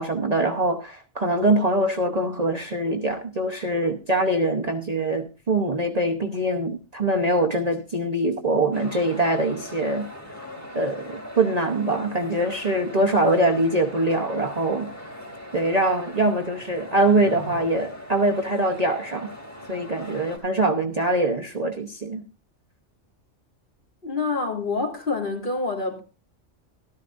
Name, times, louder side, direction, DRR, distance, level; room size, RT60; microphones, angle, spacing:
voice 1, 0.0-10.1 10.7-14.9 15.5-19.3 19.7-22.2, right 2 dB, 35° right, 1.0 m, -23 dB
sound 1, 8.7-20.4, left 1 dB, 10° left, 2.6 m, -40 dB
voice 2, 24.0-26.0, left 3 dB, 40° left, 2.8 m, -27 dB
13.5 x 13.0 x 2.6 m
omnidirectional pair, 1.3 m